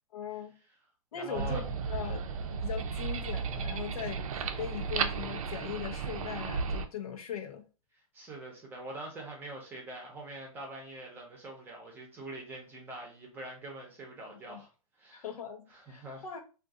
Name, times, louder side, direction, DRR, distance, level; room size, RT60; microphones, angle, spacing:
voice 1, 0.1-0.5 1.1-2.2 2.5-7.6 14.3-14.6 15.1-16.4, left 8 dB, 75° left, 0.8 m, -40 dB
voice 2, 1.1-1.6 2.8-3.2 8.1-14.7 15.0-15.2 15.7-16.2, right 2 dB, 10° right, 0.8 m, -44 dB
sound 1, 1.3-6.9, right 5 dB, 65° right, 0.5 m, -34 dB
2.6 x 2.5 x 3.6 m
hypercardioid pair, 155°, 19 cm